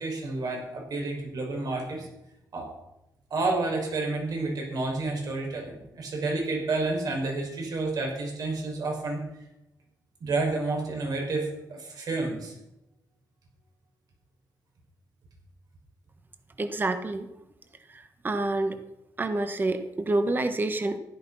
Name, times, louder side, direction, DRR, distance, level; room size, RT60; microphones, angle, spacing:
voice 1, 0.0-2.1 2.5-2.7 3.3-9.2 10.2-12.5, right 3 dB, 65° right, 1 dB, 5.5 m, -30 dB
voice 2, 16.6-17.3 17.9-18.8 19.2-21.0, right 2 dB, 30° right, 9 dB, 1.4 m, -28 dB
15.5 x 12.0 x 5.6 m, 0.88 s
cardioid pair, 115°, 7 cm